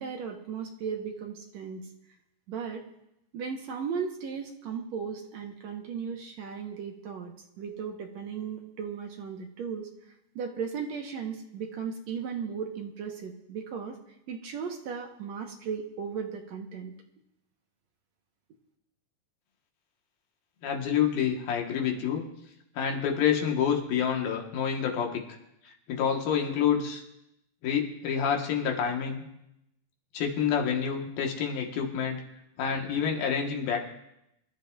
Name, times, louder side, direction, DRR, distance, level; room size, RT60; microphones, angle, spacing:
voice 1, 0.0-1.9 2.5-2.8 3.3-9.9 10.4-14.0 14.3-16.9, right 6 dB, 65° right, 2 dB, 2.0 m, -36 dB
voice 2, 20.6-22.2 22.8-25.2 25.9-27.0 27.6-29.2 30.1-32.2 32.6-33.8, left 8 dB, 80° left, 1 dB, 3.3 m, -28 dB
26.0 x 13.0 x 2.5 m, 0.83 s
omnidirectional pair, 4.1 m